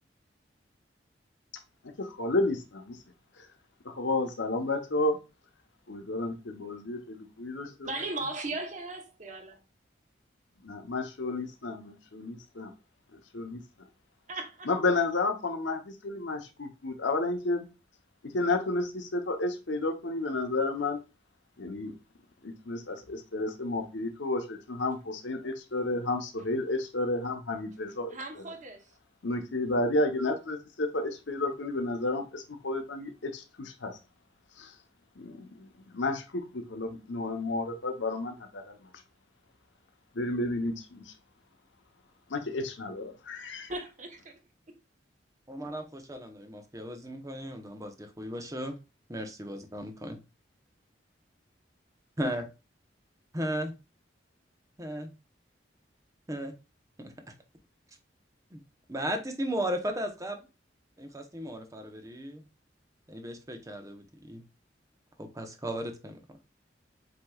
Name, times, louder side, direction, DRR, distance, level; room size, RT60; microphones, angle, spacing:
voice 1, 2.0-3.0 3.4-3.5 3.8-5.2 5.9-7.9 10.6-12.7 13.1-13.6 14.7-17.7 18.2-21.0 21.6-21.9 22.4-28.4 29.2-34.0 34.6-34.7 35.2-38.9 40.1-41.1 42.3-43.7, left 2 dB, 90° left, 0.9 m, -31 dB
voice 2, 7.8-9.5 14.3-14.7 28.1-28.9 43.7-44.3, right 2 dB, 40° right, 1.0 m, -37 dB
voice 3, 45.5-48.8 49.1-50.2 52.2-52.5 53.3-53.7 54.8-55.1 56.3-56.5 57.0-57.1 58.5-58.6 58.9-60.4 61.0-62.4 63.1-64.4 65.2-66.2, equal, 20° right, 0.8 m, -35 dB
7.8 x 2.9 x 2.3 m
head